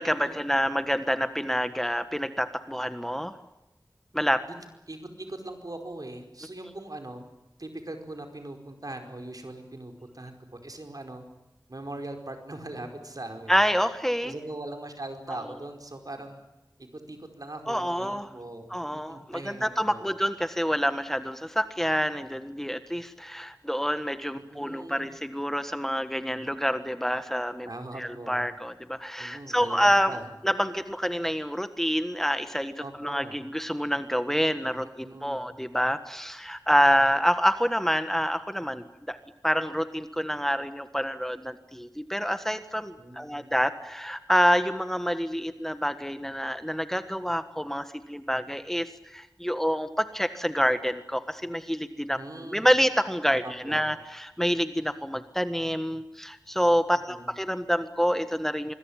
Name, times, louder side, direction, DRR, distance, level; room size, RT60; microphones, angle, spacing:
voice 1, 0.0-3.3 4.1-4.4 13.5-14.3 15.3-15.4 17.7-18.3 18.7-27.7 28.0-30.2 30.4-32.7 33.0-39.2 39.4-58.7, equal, 5° left, 10 dB, 1.5 m, -27 dB
voice 2, 4.9-7.2 7.6-10.3 10.6-11.2 11.7-13.6 14.2-16.4 16.8-20.1 24.3-25.1 27.7-28.4 29.2-30.3 32.8-33.3 35.0-35.5 43.0-43.5 52.1-52.7 53.4-53.8 57.1-57.3, right 2 dB, 60° right, 5 dB, 5.0 m, -40 dB
26.0 x 22.0 x 8.8 m, 0.95 s
wide cardioid pair, 50°, 7 cm